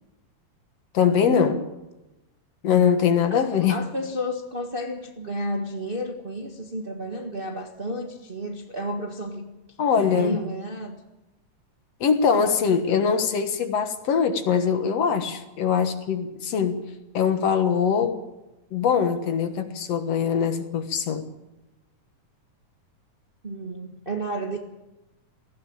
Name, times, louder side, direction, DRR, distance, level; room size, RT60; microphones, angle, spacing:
voice 1, 0.9-1.6 2.6-3.8 9.8-10.4 12.0-16.8 17.1-18.2 18.7-21.2, left 7 dB, 60° left, 8 dB, 2.4 m, -22 dB
voice 2, 3.3-9.4 10.0-11.0 23.4-24.6, equal, 25° right, 3 dB, 1.2 m, -32 dB
18.5 x 16.0 x 8.9 m, 0.98 s
omnidirectional pair, 3.3 m